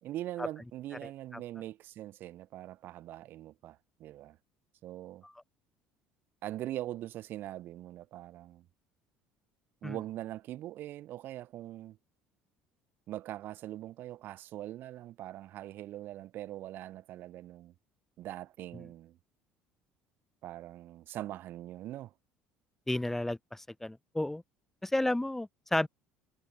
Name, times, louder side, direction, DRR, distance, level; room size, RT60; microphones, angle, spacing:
voice 1, 0.0-4.4 4.8-5.2 6.4-8.7 9.8-12.0 13.1-17.7 18.2-19.2 20.4-22.1, right 14 dB, 60° right, 3.1 m, -42 dB
voice 2, 22.9-24.4 24.8-25.9, left 1 dB, 10° left, 4.6 m, -32 dB
supercardioid pair, 95°, 4 cm